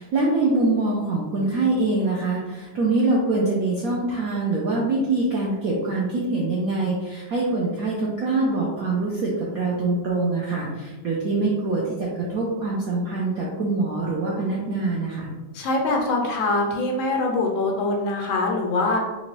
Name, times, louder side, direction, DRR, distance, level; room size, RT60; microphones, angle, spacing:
voice 1, 0.0-15.3, right 2 dB, 75° right, -4 dB, 0.8 m, -24 dB
voice 2, 15.5-19.0, left 2 dB, 80° left, 1 dB, 1.5 m, -23 dB
4.2 x 2.6 x 3.0 m, 1.2 s
omnidirectional pair, 2.2 m